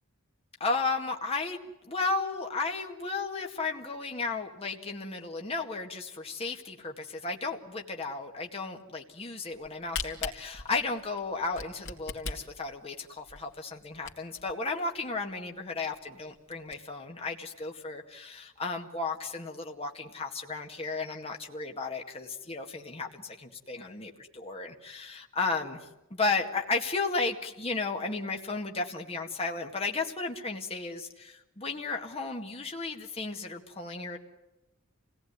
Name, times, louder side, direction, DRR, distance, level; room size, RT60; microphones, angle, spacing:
voice 1, 0.6-34.2, left 3 dB, 30° left, 2 dB, 2.0 m, -34 dB
Camera, 9.5-14.5 15.0-15.1 15.3-15.4 15.9-16.0 16.4-16.7, left 5 dB, 65° left, 2.7 m, -39 dB
28.0 x 18.5 x 9.6 m, 0.96 s
head